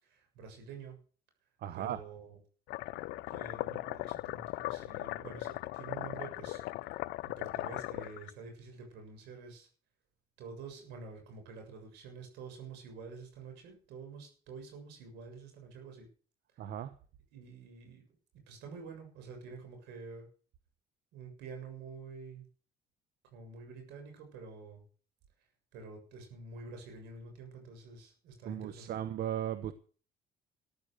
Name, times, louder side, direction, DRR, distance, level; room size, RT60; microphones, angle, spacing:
voice 1, 0.0-1.0 1.7-2.4 3.3-9.7 10.4-16.1 17.3-18.0 18.5-20.3 21.1-22.5 23.3-24.8 25.7-28.9, right 4 dB, 90° right, 5 dB, 7.2 m, -48 dB
voice 2, 1.6-2.0 16.6-16.9 28.4-29.7, right 11 dB, 70° right, 12 dB, 1.1 m, -36 dB
sound 1, 2.7-8.3, left 18 dB, 90° left, 0.6 m, -39 dB
14.0 x 11.0 x 6.6 m, 0.40 s
cardioid pair, 110°, 17 cm